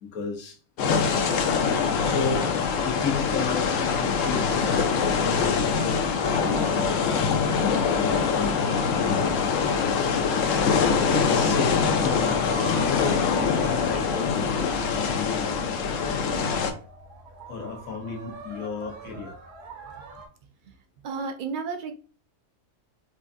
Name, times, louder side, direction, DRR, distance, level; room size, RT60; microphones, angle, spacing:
voice 1, 0.0-0.6 1.0-1.3 2.0-2.5 2.8-7.3 8.0-8.8 9.2-9.6 10.7-15.6 17.5-19.3, left 5 dB, 85° left, 1 dB, 1.4 m, -33 dB
sound 1, 0.8-16.7, left 5 dB, 70° left, 0.9 m, -24 dB
sound 2, 1.6-20.3, right 3 dB, 55° right, 1.0 m, -45 dB
voice 2, 21.0-21.9, right 5 dB, 80° right, 5 dB, 0.4 m, -31 dB
4.4 x 2.4 x 2.5 m, 0.37 s
omnidirectional pair, 1.4 m